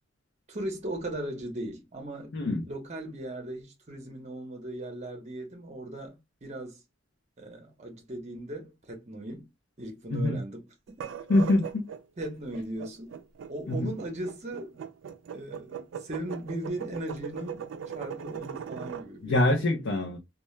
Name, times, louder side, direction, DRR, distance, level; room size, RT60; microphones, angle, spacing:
voice 1, 0.5-6.8 7.4-9.5 9.8-10.6 11.0-11.1 12.2-13.1 13.5-14.8 15.3-17.6 17.9-19.4, right 1 dB, 35° right, 0.7 m, -38 dB
voice 2, 2.3-2.7 10.1-10.4 11.3-11.9 13.7-14.0 19.2-20.2, left 1 dB, 75° left, 0.5 m, -25 dB
sound 1, 10.9-19.1, right 7 dB, 85° right, 0.3 m, -39 dB
2.2 x 2.1 x 3.0 m
head